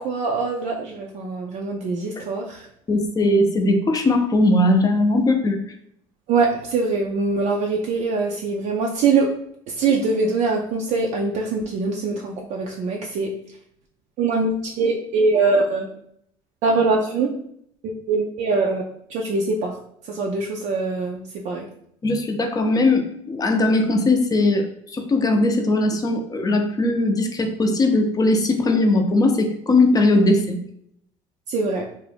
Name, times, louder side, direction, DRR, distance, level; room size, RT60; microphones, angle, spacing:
voice 1, 0.0-2.7 6.3-9.3 9.7-13.4 14.2-15.9 16.6-17.4 17.8-18.8 19.1-19.8 20.0-21.7 31.5-31.9, right 3 dB, 60° right, -1 dB, 0.4 m, -23 dB
voice 2, 2.9-5.6 22.0-24.7 24.9-30.6, left 2 dB, 25° left, 4 dB, 0.5 m, -19 dB
2.6 x 2.1 x 3.2 m, 0.69 s
hypercardioid pair, 75°, 14 cm